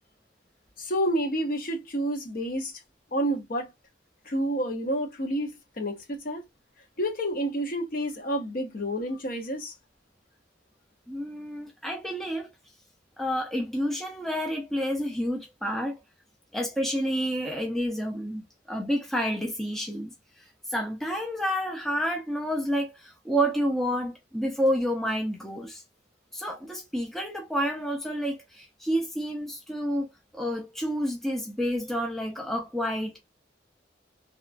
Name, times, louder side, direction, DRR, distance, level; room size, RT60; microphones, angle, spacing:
voice 1, 0.8-2.7 3.1-3.7 4.3-6.4 7.0-9.7, equal, 50° left, 0.7 m, -29 dB
voice 2, 11.1-12.5 13.2-16.0 16.5-20.1 20.7-25.8 26.3-30.1 30.3-33.2, equal, ahead, 0.4 m, -29 dB
2.8 x 2.2 x 2.4 m
head